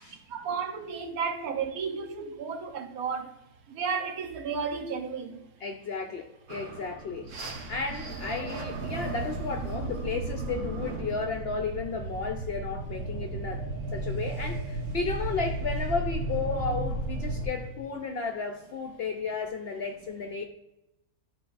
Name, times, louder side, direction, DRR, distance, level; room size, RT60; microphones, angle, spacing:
voice 1, 0.3-3.3 3.7-5.4 16.5-16.6, right 6 dB, 80° right, 1.2 m, -33 dB
voice 2, 5.6-13.6 13.9-20.4, left 4 dB, 65° left, 0.6 m, -33 dB
bottle blow processed, 6.5-17.5, right 2 dB, 65° right, 1.1 m, -34 dB
11.0 x 3.9 x 2.4 m
omnidirectional pair, 1.5 m